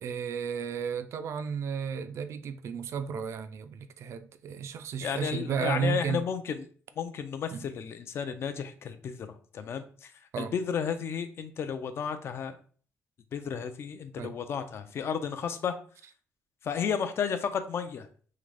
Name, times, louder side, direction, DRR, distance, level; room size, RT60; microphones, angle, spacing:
voice 1, 0.0-6.2 7.5-7.7 10.3-10.5 14.2-14.4, right 6 dB, 55° right, 0.4 m, -33 dB
voice 2, 5.0-6.6 7.0-10.1 10.4-12.6 13.3-15.8 16.6-18.1, left 7 dB, 50° left, 0.4 m, -33 dB
3.8 x 3.2 x 3.3 m
cardioid pair, 175°, 6 cm